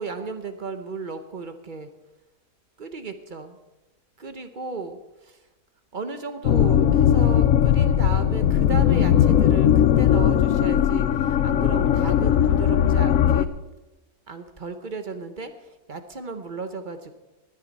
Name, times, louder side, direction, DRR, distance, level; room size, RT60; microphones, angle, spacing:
voice 1, 0.0-1.9 2.8-3.6 4.2-5.4 5.9-13.5 14.3-15.5 15.9-17.1, right 4 dB, 40° right, 8 dB, 0.8 m, -34 dB
sound 1, 6.4-13.5, left 10 dB, 70° left, 0.9 m, -19 dB
19.0 x 10.5 x 4.1 m, 1.1 s
omnidirectional pair, 1.7 m